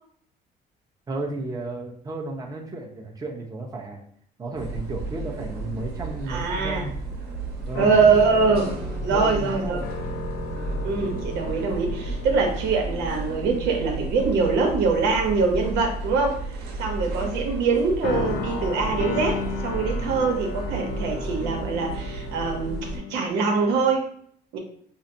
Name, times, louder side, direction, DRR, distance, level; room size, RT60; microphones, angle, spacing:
voice 1, 1.1-4.0 4.4-7.0 7.7-8.0 9.1-9.9, right 2 dB, 20° right, -1 dB, 0.9 m, -33 dB
sound 1, 4.5-23.0, right 3 dB, 65° right, 1.2 m, -33 dB
voice 2, 6.3-6.8 7.8-8.8 9.0-9.8 10.8-16.4 16.8-24.1 24.5-24.6, right 4 dB, 85° right, 2 dB, 1.0 m, -23 dB
sound 2, 7.7-13.8 14.2-14.5 15.4-16.2 18.0-23.2, left 5 dB, 80° left, 0.6 m, -35 dB
5.5 x 2.1 x 2.7 m, 0.63 s
cardioid pair, 110°, 17 cm